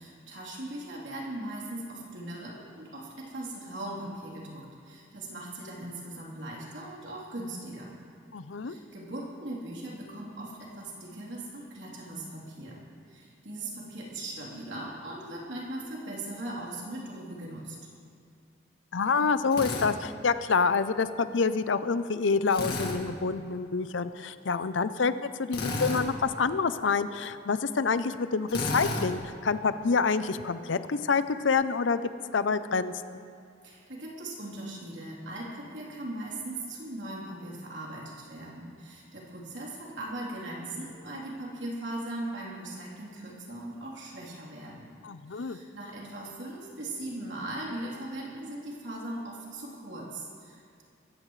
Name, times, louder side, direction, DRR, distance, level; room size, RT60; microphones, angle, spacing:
voice 1, 0.0-7.9 8.7-17.8 33.6-44.9 45.3-50.8, right 1 dB, 70° right, -4 dB, 3.5 m, -39 dB
voice 2, 8.3-8.7 18.9-33.2 45.0-45.6, left 5 dB, 75° left, 12 dB, 0.6 m, -27 dB
Drill, 19.5-19.9 22.5-23.0 25.5-26.1 28.5-29.1, left 2 dB, 55° left, 2.0 m, -31 dB
21.5 x 15.5 x 3.2 m, 2.5 s
head